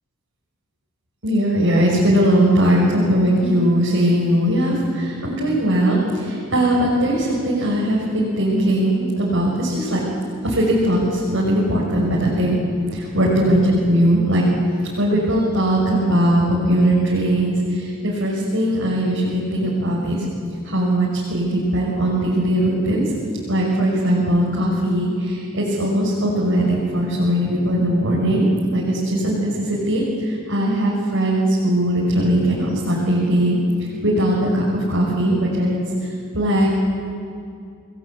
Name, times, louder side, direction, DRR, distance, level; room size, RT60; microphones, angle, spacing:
voice 1, 1.2-10.0 10.4-12.6 12.9-14.5 15.0-20.2 20.6-23.1 23.5-36.7, right 1 dB, 65° right, -5 dB, 6.2 m, -19 dB
29.5 x 21.5 x 8.6 m, 2.4 s
head